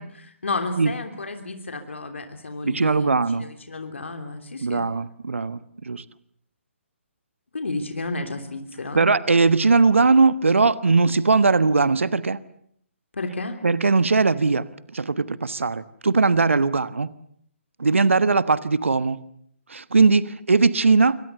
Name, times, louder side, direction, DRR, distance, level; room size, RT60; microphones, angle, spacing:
voice 1, 0.0-4.8 7.5-9.0 13.1-13.6, left 2 dB, 65° left, 6 dB, 3.1 m, -32 dB
voice 2, 2.6-3.5 4.6-6.0 8.9-12.4 13.6-14.7 14.9-17.1 17.8-19.2 19.7-21.2, right 4 dB, 70° right, 15 dB, 1.2 m, -19 dB
27.5 x 24.5 x 6.8 m, 0.67 s
figure-of-eight pair, 135°, 7 cm